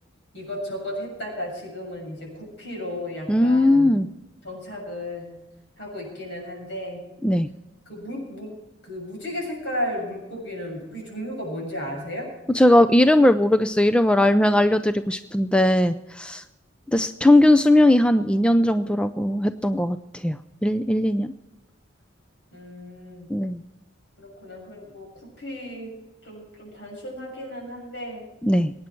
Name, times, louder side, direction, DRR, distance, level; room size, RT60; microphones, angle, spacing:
voice 1, 0.3-3.9 4.4-5.3 5.8-7.1 7.9-8.5 8.8-12.3 22.5-23.3 24.2-25.1 25.4-25.9 26.2-28.2, left 1 dB, 65° left, 0 dB, 7.0 m, -34 dB
voice 2, 3.3-4.1 7.2-7.5 12.5-16.4 16.9-21.3 23.3-23.6 28.4-28.7, left 1 dB, 5° left, 10 dB, 0.4 m, -19 dB
22.5 x 9.7 x 4.5 m, 1.0 s
head